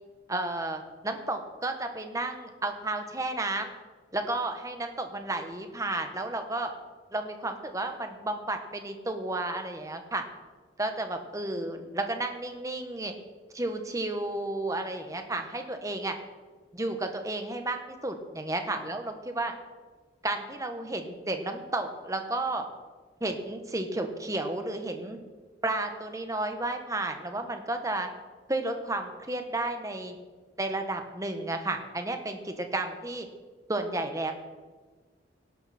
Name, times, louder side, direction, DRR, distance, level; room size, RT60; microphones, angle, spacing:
voice 1, 0.3-3.7 4.1-6.7 7.1-10.2 10.8-13.1 13.5-16.2 16.7-19.5 20.2-22.6 23.2-25.2 25.6-28.1 28.5-30.1 30.6-33.3 33.7-34.3, right 2 dB, 20° right, 6 dB, 1.4 m, -32 dB
18.0 x 11.5 x 4.4 m, 1.3 s
head